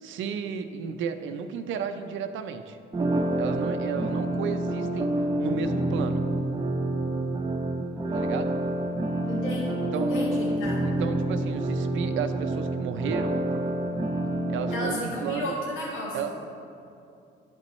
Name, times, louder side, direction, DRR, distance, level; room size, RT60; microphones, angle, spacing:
voice 1, 0.0-2.8 3.4-5.1 5.4-6.2 8.1-8.5 9.8-10.1 10.8-13.4 14.5-15.5 16.1-16.3, right 7 dB, 75° right, 8 dB, 0.5 m, -33 dB
sound 1, 2.9-14.9, right 1 dB, 20° right, 0.6 m, -28 dB
voice 2, 9.2-10.8 14.7-16.2, left 1 dB, 85° left, -4 dB, 1.4 m, -32 dB
12.0 x 5.3 x 3.1 m, 2.7 s
cardioid pair, 90°, 20 cm